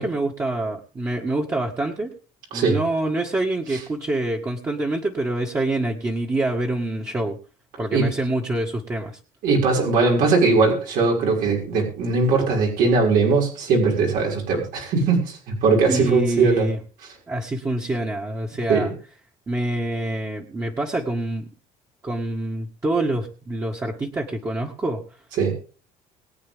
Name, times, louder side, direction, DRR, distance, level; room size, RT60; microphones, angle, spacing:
voice 1, 0.0-2.1 2.5-7.4 7.8-9.2 15.9-16.8 17.3-18.9 19.5-21.5 22.0-25.0, right 2 dB, 20° right, -2 dB, 1.9 m, -26 dB
voice 2, 9.4-16.7 18.7-18.9 25.4-25.5, right 4 dB, 80° right, -1 dB, 6.3 m, -20 dB
22.5 x 8.8 x 3.7 m, 0.38 s
cardioid pair, 115°, 15 cm